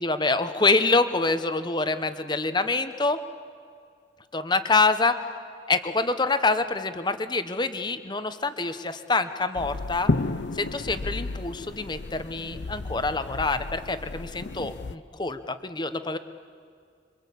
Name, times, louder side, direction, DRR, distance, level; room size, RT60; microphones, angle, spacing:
voice 1, 0.0-3.2 4.3-5.1 5.7-10.1 10.5-16.2, left 3 dB, 25° left, 10 dB, 1.0 m, -26 dB
sound 1, 9.6-15.0, left 3 dB, 65° left, 0.7 m, -32 dB
26.5 x 24.5 x 8.5 m, 2.2 s
head